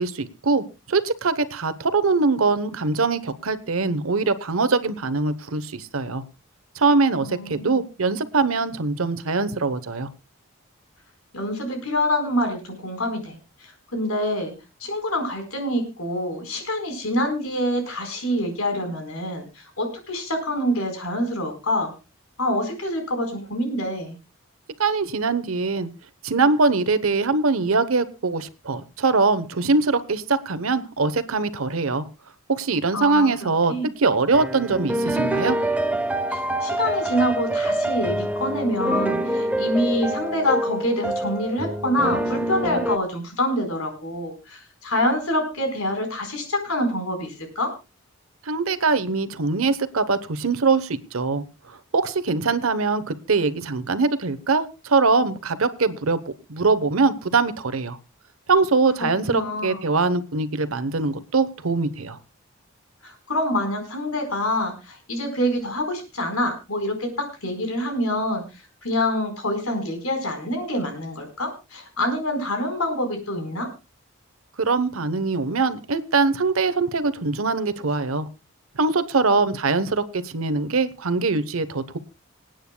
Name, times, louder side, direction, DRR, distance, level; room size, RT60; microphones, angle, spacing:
voice 1, 0.0-6.2 6.7-10.1 24.8-25.9 26.2-32.1 32.5-33.7 34.0-35.6 48.4-51.4 51.9-56.2 56.5-58.0 58.5-62.2 74.6-78.3 78.7-82.0, right 4 dB, 80° right, 12 dB, 1.0 m, -22 dB
voice 2, 7.2-7.8 11.3-14.5 14.8-21.9 22.4-24.2 32.9-33.9 36.3-47.7 59.0-59.8 63.0-73.7, left 1 dB, 85° left, 5 dB, 4.5 m, -26 dB
sound 1, 34.3-43.0, right 1 dB, 5° right, 0.6 m, -26 dB
26.5 x 9.1 x 2.3 m, 0.28 s
head